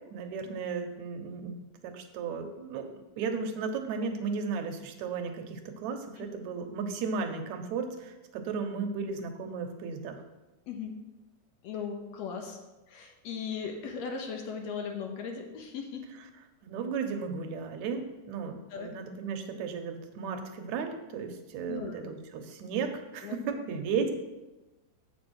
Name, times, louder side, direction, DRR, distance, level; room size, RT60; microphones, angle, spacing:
voice 1, 0.1-1.5 1.8-2.9 3.2-10.2 16.6-24.1, right 5 dB, 70° right, 6 dB, 2.0 m, -35 dB
voice 2, 11.6-12.6 12.9-16.0 18.7-18.9 21.7-22.0 23.2-23.6, left 6 dB, 70° left, 3 dB, 1.8 m, -38 dB
8.0 x 5.2 x 6.2 m, 1.1 s
omnidirectional pair, 3.6 m